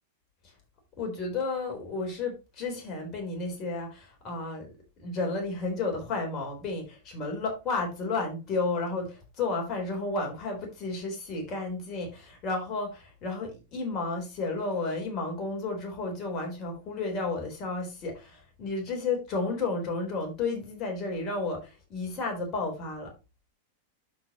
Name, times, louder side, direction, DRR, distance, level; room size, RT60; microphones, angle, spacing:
voice 1, 1.0-4.7 5.0-23.1, left 3 dB, 35° left, 3.9 m, -32 dB
12.0 x 5.1 x 2.9 m
figure-of-eight pair, 90°, 0 cm